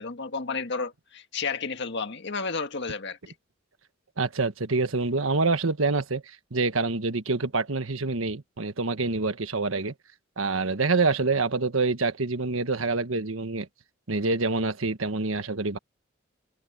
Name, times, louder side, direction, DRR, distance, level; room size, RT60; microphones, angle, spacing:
voice 1, 0.0-3.2, left 4 dB, 60° left, 1.7 m, -32 dB
voice 2, 4.2-6.2 6.5-9.9 10.4-13.7 14.1-15.8, right 3 dB, 85° right, 1.4 m, -26 dB
head